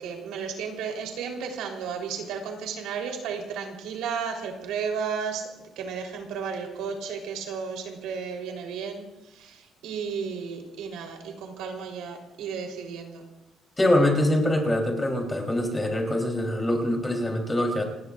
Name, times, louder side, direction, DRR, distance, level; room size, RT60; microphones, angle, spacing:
voice 1, 0.0-5.5 5.8-13.2, right 6 dB, 85° right, 2 dB, 3.5 m, -33 dB
voice 2, 13.8-17.8, left 1 dB, 10° left, 1 dB, 3.4 m, -24 dB
28.0 x 19.5 x 2.5 m, 0.99 s
cardioid pair, 160°, 0 cm